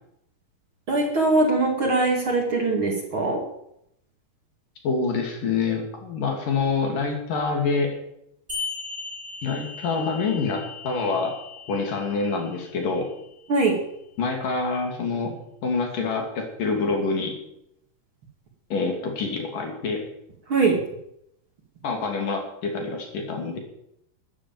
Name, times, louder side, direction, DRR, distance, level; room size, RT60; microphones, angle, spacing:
voice 1, 0.9-3.4 13.5-13.8 20.5-20.8, right 3 dB, 40° right, 1 dB, 2.8 m, -21 dB
voice 2, 4.8-8.0 9.4-11.4 11.7-13.1 14.2-15.4 15.6-17.3 18.7-20.0 21.8-23.6, left 4 dB, 65° left, 2 dB, 4.5 m, -26 dB
sound 1, 8.5-13.5, left 5 dB, 10° right, 6.5 m, -38 dB
14.0 x 9.8 x 9.1 m, 0.78 s
omnidirectional pair, 4.2 m